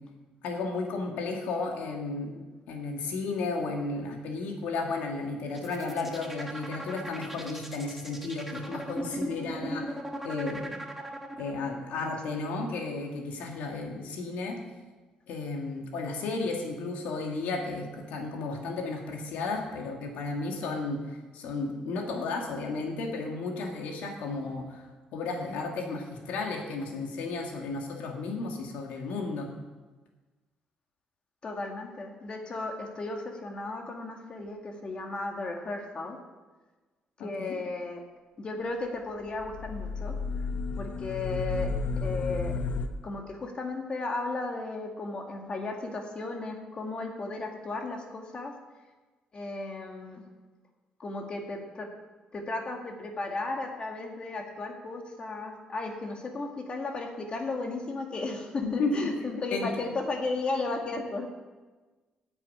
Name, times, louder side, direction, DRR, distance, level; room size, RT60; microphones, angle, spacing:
voice 1, 0.4-10.0 10.2-10.8 11.4-14.6 15.3-24.9 25.1-29.5 37.2-37.5 58.6-59.7, left 3 dB, 85° left, 2 dB, 2.2 m, -33 dB
sound 1, 5.5-11.8, right 1 dB, 10° right, 1.7 m, -38 dB
voice 2, 31.4-36.2 37.2-38.0 38.4-40.2 40.8-41.7 42.0-42.6 43.0-48.5 49.3-50.2 51.0-51.9 52.3-61.2, left 2 dB, 40° left, 2 dB, 1.9 m, -35 dB
sound 2, 39.3-42.9, left 4 dB, 65° left, 1.0 m, -32 dB
9.6 x 7.3 x 8.7 m, 1.3 s
cardioid pair, 95°, 3 cm